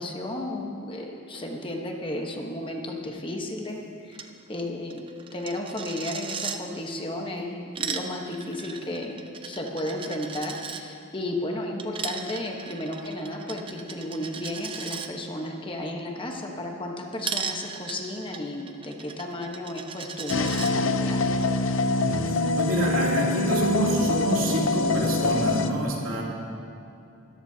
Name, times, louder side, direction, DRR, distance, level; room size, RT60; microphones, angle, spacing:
voice 1, 0.0-5.0 5.3-21.2, left 1 dB, 25° left, 1 dB, 1.1 m, -33 dB
Coin (dropping), 4.1-4.3 4.6-4.7 4.9-6.6 7.5-10.8 11.8-15.1 17.2-20.7, right 6 dB, 25° right, 0.5 m, -36 dB
sound 1, 20.3-25.7, left 3 dB, 65° left, 0.7 m, -25 dB
voice 2, 22.0-26.2, right 2 dB, 85° right, -3 dB, 2.8 m, -27 dB
21.5 x 14.0 x 2.8 m, 2.7 s
head